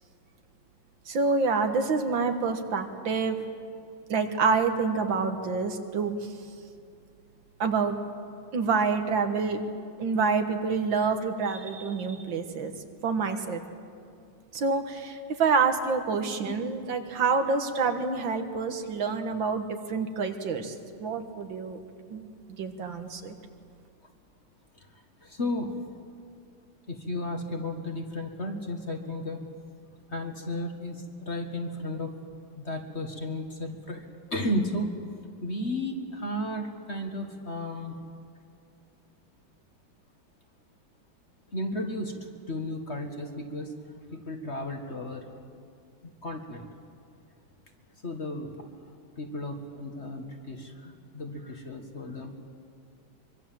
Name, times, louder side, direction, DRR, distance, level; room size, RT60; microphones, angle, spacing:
voice 1, 1.1-3.4 4.1-6.3 7.6-8.0 8.5-9.6 10.0-12.7 13.0-13.6 14.5-20.8 21.0-21.8 22.1-23.4, right 4 dB, 70° right, 7 dB, 2.1 m, -27 dB
voice 2, 24.9-25.7 26.9-29.4 30.1-32.1 32.6-35.1 35.4-38.0 41.5-42.2 42.5-43.7 44.1-45.3 46.2-46.7 48.0-48.5 49.2-52.4, left 1 dB, 35° left, 4 dB, 1.8 m, -34 dB
24.5 x 23.5 x 7.6 m, 2.4 s
omnidirectional pair, 2.2 m